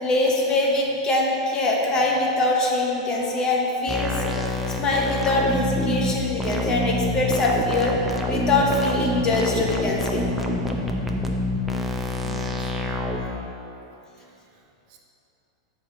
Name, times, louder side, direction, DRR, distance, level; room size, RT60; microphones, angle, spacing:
voice 1, 0.0-7.9 8.3-10.3, left 2 dB, 25° left, -2 dB, 0.9 m, -23 dB
sound 1, 3.9-13.2, left 1 dB, 5° right, 0.5 m, -26 dB
voice 2, 12.2-13.6 14.2-14.6 14.9-15.0, right 5 dB, 45° right, 1 dB, 0.7 m, -44 dB
7.8 x 3.1 x 4.9 m, 3.0 s
hypercardioid pair, 125°, 3 cm